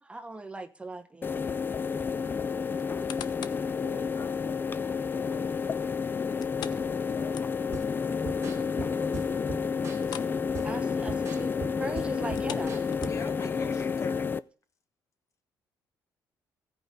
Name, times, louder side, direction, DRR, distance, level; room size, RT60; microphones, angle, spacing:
voice 1, 0.0-1.4 10.6-12.8, right 2 dB, 15° right, 0.9 m, -39 dB
sound 1, 1.2-14.4, left 6 dB, 30° left, 0.4 m, -30 dB
sound 2, 2.8-3.7 4.2-4.3 6.4-7.9 8.2-8.3 8.7-8.8 10.0-10.4 10.7-10.9 12.2-13.5 14.1-14.2, left 11 dB, 80° left, 0.6 m, -43 dB
voice 2, 3.7-5.6 6.2-10.4, left 5 dB, 60° left, 1.9 m, -48 dB
sound 3, 7.7-13.4, right 5 dB, 40° right, 2.0 m, -42 dB
voice 3, 13.1-14.3, left 4 dB, 45° left, 1.3 m, -40 dB
14.5 x 5.1 x 6.5 m
cardioid pair, 95°, 7 cm